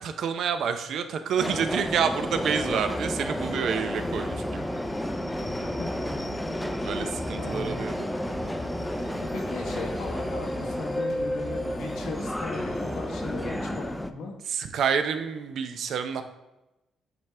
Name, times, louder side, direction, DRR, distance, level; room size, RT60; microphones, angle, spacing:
voice 1, 0.0-4.6 6.8-8.1 14.5-16.2, right 7 dB, 70° right, 8 dB, 0.6 m, -28 dB
Subway metro underground, 1.4-14.1, equal, 5° left, 0.4 m, -31 dB
sound 1, 2.5-14.0, left 1 dB, 70° left, 1.4 m, -42 dB
voice 2, 5.8-6.1 7.4-7.9 9.2-14.3, left 4 dB, 85° left, 2 dB, 1.2 m, -37 dB
8.2 x 3.5 x 3.3 m, 0.96 s
cardioid pair, 90°, 0 cm